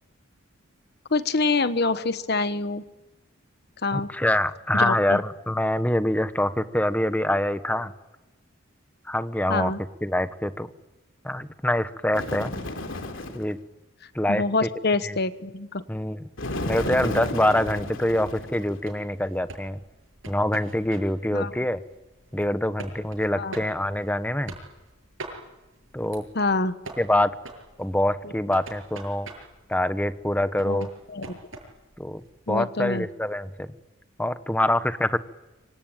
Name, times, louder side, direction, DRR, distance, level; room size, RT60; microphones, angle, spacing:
voice 1, 1.1-2.8 3.8-4.1 4.7-5.2 9.5-9.8 14.3-15.8 21.3-21.5 23.3-23.5 26.3-26.7 30.6-30.9 31.1-31.2 32.5-33.1, left 3 dB, 50° left, 12 dB, 1.2 m, -26 dB
voice 2, 3.9-7.9 9.0-9.7 10.0-10.7 11.2-12.5 13.3-13.6 14.1-14.7 15.0-15.2 15.9-16.3 16.7-19.8 20.3-21.8 22.3-24.6 25.9-26.2 27.0-27.3 27.8-29.3 29.7-30.9 32.0-32.2 32.5-33.7 34.2-35.2, left 1 dB, 10° left, 11 dB, 1.1 m, -25 dB
Bird, 12.1-13.5 16.4-18.9, left 1 dB, 70° left, 3.2 m, -33 dB
sound 1, 18.8-32.6, right 2 dB, 70° right, 7.4 m, -45 dB
25.5 x 25.0 x 9.1 m, 1.1 s
head